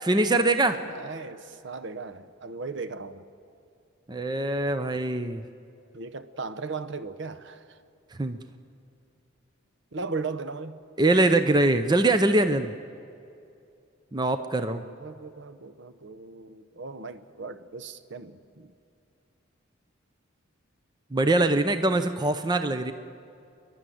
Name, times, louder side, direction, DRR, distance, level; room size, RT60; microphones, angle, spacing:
voice 1, 0.0-0.8 4.1-5.4 8.2-8.4 11.0-12.7 14.1-14.8 21.1-22.9, right 2 dB, 20° right, 0.6 m, -23 dB
voice 2, 0.8-3.2 5.9-7.8 9.9-10.9 14.6-18.7, right 4 dB, 60° right, 0.8 m, -37 dB
29.0 x 11.5 x 9.2 m
head